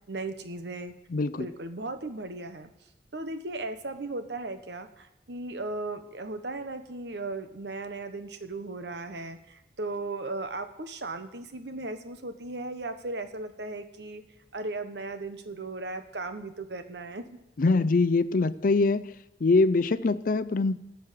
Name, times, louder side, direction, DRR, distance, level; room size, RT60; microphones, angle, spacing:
voice 1, 0.1-0.9 1.4-2.7 3.1-14.2 14.5-17.2, right 2 dB, 70° right, 9 dB, 1.1 m, -36 dB
voice 2, 1.1-1.5 17.6-19.1 19.4-20.8, left 3 dB, 50° left, 16 dB, 0.5 m, -23 dB
17.5 x 6.4 x 7.4 m, 0.91 s
head